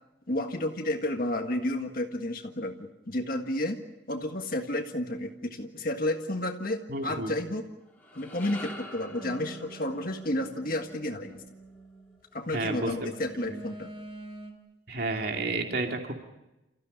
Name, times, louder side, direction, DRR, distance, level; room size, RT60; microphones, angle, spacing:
voice 1, 0.3-3.8 4.1-7.7 8.1-11.4 12.3-13.9, left 1 dB, 50° left, 4 dB, 1.7 m, -31 dB
voice 2, 6.9-7.3 12.5-13.1 13.5-13.6 14.9-16.1, right 2 dB, 60° right, 3 dB, 2.6 m, -31 dB
sound 1, 7.8-12.3, left 1 dB, 10° left, 3.8 m, -47 dB
sound 2, 9.2-12.2 12.9-14.5, right 2 dB, 35° right, 3.6 m, -46 dB
29.5 x 15.0 x 10.0 m, 0.96 s
head